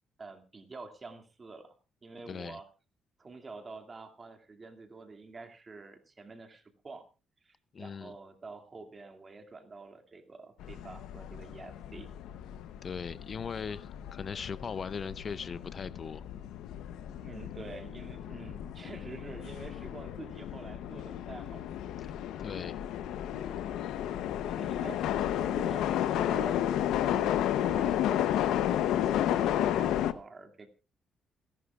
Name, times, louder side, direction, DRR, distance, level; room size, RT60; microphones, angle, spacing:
voice 1, 0.2-1.7 2.0-2.7 3.2-7.0 7.4-12.1 17.2-21.7 24.5-26.7 27.0-30.7, right 3 dB, 35° right, 2.4 m, -47 dB
voice 2, 2.3-2.6 7.7-8.1 12.8-16.3 22.0-22.1 22.4-22.7, left 6 dB, 45° left, 0.6 m, -39 dB
sound 1, 10.6-30.1, left 11 dB, 90° left, 0.8 m, -32 dB
28.0 x 11.5 x 2.4 m
cardioid pair, 90°, 0 cm